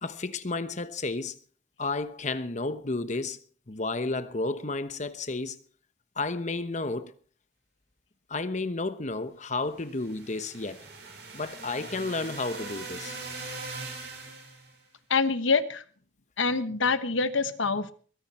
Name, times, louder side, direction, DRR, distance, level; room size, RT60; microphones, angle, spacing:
voice 1, 0.0-1.4 1.8-3.4 3.7-5.6 6.2-7.1 8.3-10.8 11.3-13.2, left 3 dB, 40° left, 1.0 m, -32 dB
sound 1, 9.8-14.7, right 3 dB, 60° right, 5.3 m, -41 dB
voice 2, 15.1-15.8 16.4-17.9, left 4 dB, 90° left, 1.3 m, -25 dB
22.5 x 10.5 x 4.3 m
head